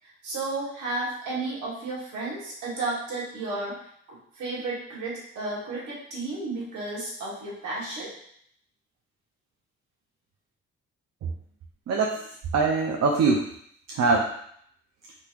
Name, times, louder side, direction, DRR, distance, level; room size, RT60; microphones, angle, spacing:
voice 1, 0.0-3.8 4.1-8.1, right 2 dB, 80° right, -5 dB, 1.3 m, -33 dB
voice 2, 11.9-13.5 13.9-14.3, right 4 dB, 65° right, 0 dB, 0.6 m, -23 dB
3.7 x 2.8 x 2.4 m, 0.67 s
supercardioid pair, 55°, 29 cm